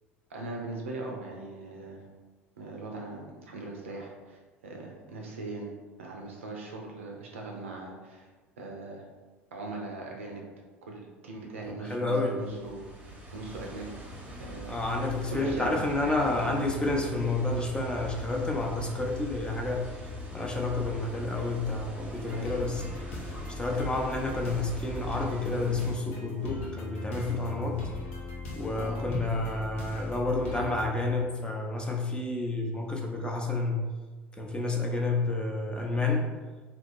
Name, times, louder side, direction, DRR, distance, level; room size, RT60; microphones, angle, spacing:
voice 1, 0.3-2.0 2.6-5.7 6.0-8.3 8.6-9.0 9.5-10.4 10.8-14.0 14.4-14.7 15.3-15.7 16.0-16.5 22.3-22.5 28.8-29.0, right 2 dB, 75° right, 0 dB, 0.5 m, -40 dB
voice 2, 11.8-12.4 14.6-19.9 20.3-22.8 23.1-27.8 28.6-33.8 34.4-36.3, left 2 dB, 15° left, 0 dB, 0.5 m, -30 dB
sound 1, 12.4-25.9, equal, 20° right, 0.7 m, -41 dB
sound 2, 22.3-30.9, left 3 dB, 70° left, 0.6 m, -39 dB
2.7 x 2.2 x 2.6 m, 1.3 s
figure-of-eight pair, 65°, 7 cm